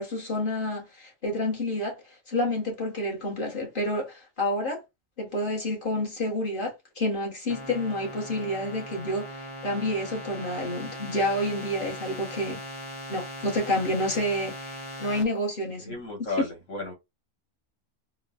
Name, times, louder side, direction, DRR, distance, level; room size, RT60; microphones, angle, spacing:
voice 1, 0.0-2.0 2.3-4.8 5.2-12.6 13.1-15.9, left 1 dB, 45° left, 1.4 m, -29 dB
sound 1, 7.5-15.2, equal, 30° left, 0.8 m, -39 dB
voice 2, 15.8-16.9, left 2 dB, 80° left, 1.9 m, -33 dB
3.8 x 2.3 x 2.5 m
omnidirectional pair, 1.3 m